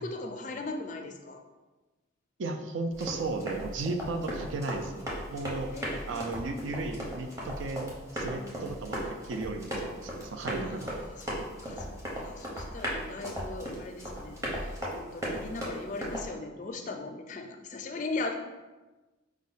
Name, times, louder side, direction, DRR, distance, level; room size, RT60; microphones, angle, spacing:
voice 1, 0.0-1.4 5.7-6.5 8.3-8.9 10.6-18.3, left 3 dB, 40° left, 4 dB, 0.3 m, -39 dB
voice 2, 2.4-5.7 6.1-10.9, right 3 dB, 70° right, 5 dB, 0.4 m, -35 dB
Run, 2.9-16.3, equal, 15° right, 0.7 m, -37 dB
4.6 x 2.1 x 3.9 m, 1.2 s
head